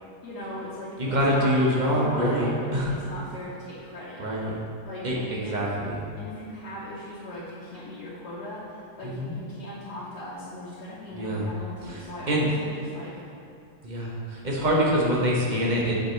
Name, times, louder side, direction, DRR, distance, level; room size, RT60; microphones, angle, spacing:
voice 1, 0.2-1.6 1.9-4.2 4.8-5.6 6.2-13.2 14.6-14.9, left 1 dB, 80° left, -8 dB, 1.5 m, -39 dB
voice 2, 1.0-2.9 4.2-4.5 5.0-6.0 9.0-9.3 11.1-11.5 11.8-12.5 13.8-16.0, equal, 35° right, -4 dB, 0.8 m, -25 dB
7.8 x 4.8 x 3.1 m, 2.5 s
omnidirectional pair, 1.7 m